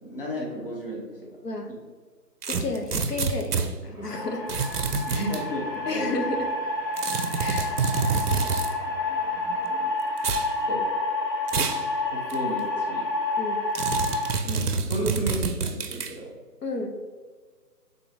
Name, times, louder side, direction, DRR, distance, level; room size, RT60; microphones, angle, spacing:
voice 1, 0.0-1.2 1.7-1.8 5.1-6.1 10.7-10.8 12.1-13.1 14.4-16.3, right 1 dB, 35° left, -2 dB, 0.7 m, -33 dB
sound 1, 2.4-3.7 4.5-5.4 7.0-8.7 10.2-10.5 11.5-11.9 12.3-12.4 13.8-16.1, right 5 dB, 65° right, 0.5 m, -27 dB
voice 2, 2.5-4.4 5.1-5.3 5.9-6.5 7.4-7.8 13.4-13.7 16.6-17.0, left 2 dB, 70° left, 3 dB, 0.7 m, -32 dB
sound 2, 3.9-9.9, right 1 dB, 20° right, 1.3 m, -44 dB
sound 3, 4.1-14.3, left 2 dB, 90° left, 1.1 m, -29 dB
4.8 x 3.7 x 2.6 m, 1.5 s
figure-of-eight pair, 155°, 49 cm